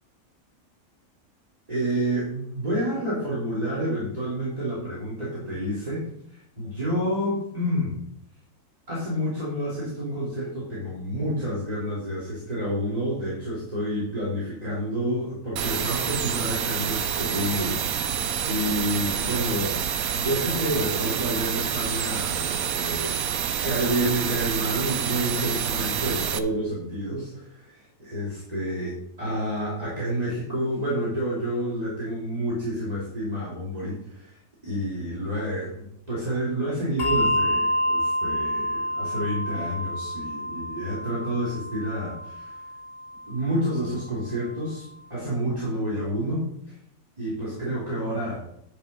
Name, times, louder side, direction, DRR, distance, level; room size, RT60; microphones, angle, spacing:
voice 1, 1.7-8.0 8.9-19.8 20.1-23.1 23.6-34.4 34.6-42.5 43.3-46.4 47.2-48.4, equal, 25° right, -8 dB, 3.0 m, -29 dB
sound 1, 15.6-26.4, right 8 dB, 75° right, 1.1 m, -28 dB
Bell, 37.0-43.9, equal, 45° left, 0.6 m, -28 dB
10.5 x 5.6 x 5.3 m, 0.74 s
omnidirectional pair, 1.5 m